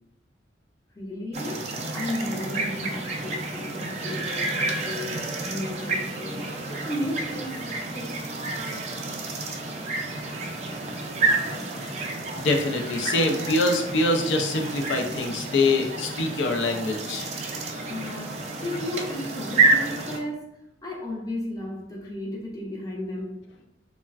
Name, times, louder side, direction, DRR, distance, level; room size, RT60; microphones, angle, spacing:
voice 1, 1.0-8.2 17.9-20.5 20.8-23.4, left 1 dB, 20° left, -2 dB, 0.5 m, -34 dB
sound 1, 1.3-20.2, right 3 dB, 35° right, 0.3 m, -29 dB
voice 2, 12.4-17.3, left 2 dB, 85° left, 3 dB, 0.4 m, -24 dB
3.2 x 2.1 x 2.3 m, 0.84 s
head